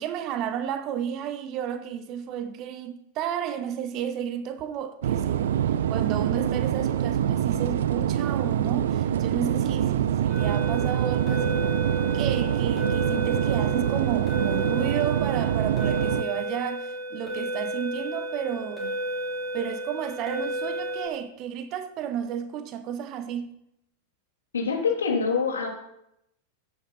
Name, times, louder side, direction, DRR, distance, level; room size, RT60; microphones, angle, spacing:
voice 1, 0.0-5.6 5.9-11.7 12.1-19.0 19.5-23.6, right 9 dB, 40° right, 1.0 m, -32 dB
sound 1, 5.0-16.2, right 10 dB, 60° right, 0.4 m, -25 dB
sound 2, 10.3-21.1, equal, 5° left, 5.4 m, -32 dB
voice 2, 24.5-25.7, left 5 dB, 70° left, 2.9 m, -25 dB
15.0 x 8.5 x 4.2 m
figure-of-eight pair, 90°, 0 cm